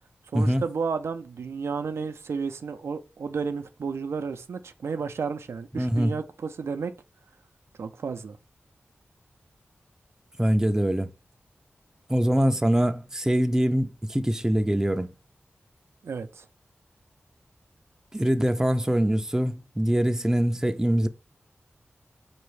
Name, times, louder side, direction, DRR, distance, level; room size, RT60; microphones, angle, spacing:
voice 1, 0.3-6.9 7.8-8.4 16.0-16.5, right 5 dB, 85° right, 0.4 m, -32 dB
voice 2, 5.7-6.2 10.4-11.1 12.1-15.1 18.1-21.1, equal, 10° right, 0.5 m, -23 dB
4.6 x 2.5 x 3.2 m
cardioid pair, 55°, 4 cm